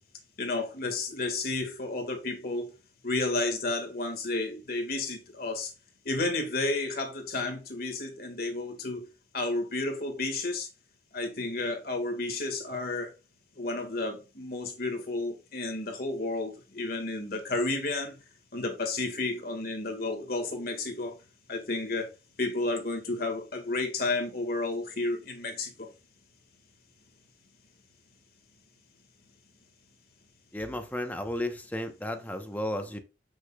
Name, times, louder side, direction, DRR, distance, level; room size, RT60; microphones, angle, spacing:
voice 1, 0.4-2.7 3.0-5.7 6.0-9.1 9.3-10.7 11.1-13.1 13.5-18.2 18.5-21.2 21.5-22.1 22.4-25.9, left 2 dB, 55° left, 2.0 m, -32 dB
voice 2, 30.5-33.0, left 1 dB, 10° left, 1.0 m, -33 dB
8.0 x 6.5 x 2.4 m
head